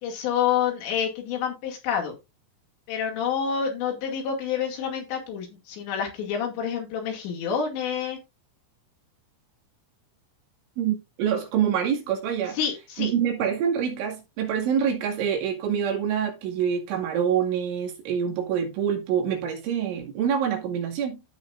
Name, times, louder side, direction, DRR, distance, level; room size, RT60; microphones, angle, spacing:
voice 1, 0.0-2.2 2.9-8.2 12.5-13.1, left 7 dB, 65° left, 4.4 m, -28 dB
voice 2, 10.8-12.6 13.0-21.2, right 8 dB, 75° right, 4.5 m, -26 dB
15.0 x 5.5 x 2.5 m
omnidirectional pair, 5.6 m